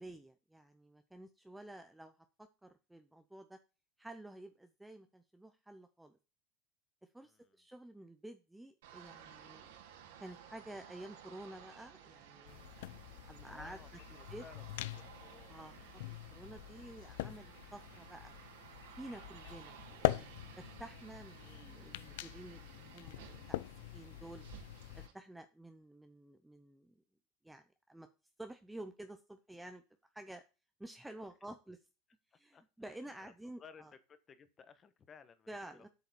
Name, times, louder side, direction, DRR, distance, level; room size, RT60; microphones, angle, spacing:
voice 1, 0.0-3.6 4.0-6.2 7.1-9.7 10.2-12.9 13.3-13.8 14.3-14.4 15.5-15.7 16.1-18.3 18.9-20.3 20.6-23.6 23.9-24.4 24.9-26.9 27.4-28.1 28.4-29.8 30.1-30.4 30.8-31.8 32.3-33.9 35.5-35.9, right 1 dB, 5° right, 8 dB, 0.7 m, -51 dB
voice 2, 7.2-7.6 13.5-13.9 14.1-14.6 14.9-15.9 32.3-32.6 32.9-33.9 34.3-35.5 35.7-35.9, left 6 dB, 20° left, 12 dB, 1.3 m, -59 dB
sound 1, 8.8-25.1, right 9 dB, 80° right, 3.6 m, -56 dB
sound 2, 12.5-25.1, left 16 dB, 75° left, 0.5 m, -43 dB
8.2 x 7.0 x 7.0 m, 0.31 s
supercardioid pair, 165°, 0 cm